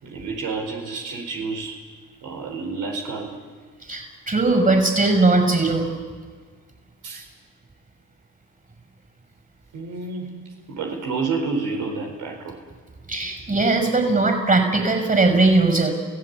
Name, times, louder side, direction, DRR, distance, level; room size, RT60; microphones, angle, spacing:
voice 1, 0.0-1.8 2.2-3.4 7.0-7.2 9.7-10.3 10.7-12.6, right 4 dB, 80° right, 1 dB, 4.6 m, -29 dB
voice 2, 3.9-5.9 13.1-15.9, right 3 dB, 30° right, 5 dB, 6.0 m, -19 dB
29.5 x 16.5 x 8.4 m, 1.5 s
cardioid pair, 90°, 30 cm